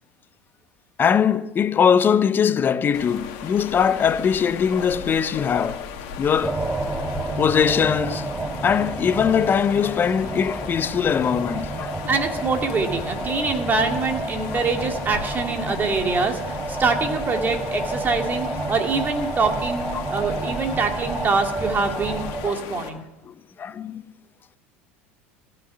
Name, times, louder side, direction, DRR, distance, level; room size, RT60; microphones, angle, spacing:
voice 1, 1.0-5.9 6.2-6.6 7.4-8.3 8.6-12.0 13.3-13.4 14.5-14.6 19.9-20.1 20.3-20.5 22.4-22.6 23.3-24.0, left 7 dB, 30° left, 0.6 m, -21 dB
sound 1, 2.9-22.9, left 7 dB, 60° left, 1.8 m, -37 dB
sound 2, 6.4-22.5, right 2 dB, 15° right, 0.9 m, -30 dB
voice 2, 12.1-23.0, right 4 dB, 30° right, 2.2 m, -24 dB
15.0 x 6.6 x 9.7 m
hypercardioid pair, 80°, 7 cm